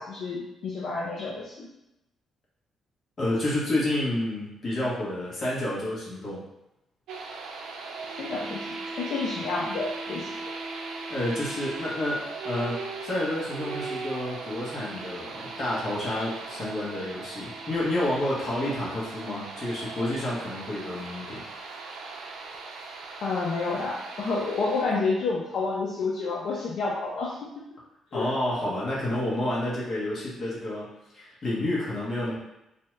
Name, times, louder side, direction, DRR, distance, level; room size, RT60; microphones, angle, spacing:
voice 1, 0.0-1.7 8.2-10.3 23.2-27.6 28.1-28.3, left 3 dB, 65° left, -5 dB, 0.5 m, -30 dB
voice 2, 3.2-6.4 11.1-21.4 28.1-30.9 31.1-32.4, left 1 dB, 45° left, -6 dB, 1.2 m, -29 dB
sound 1, 7.1-24.8, right 3 dB, 85° right, 0.4 m, -38 dB
2.7 x 2.2 x 3.1 m, 0.91 s
cardioid pair, 90°, 0 cm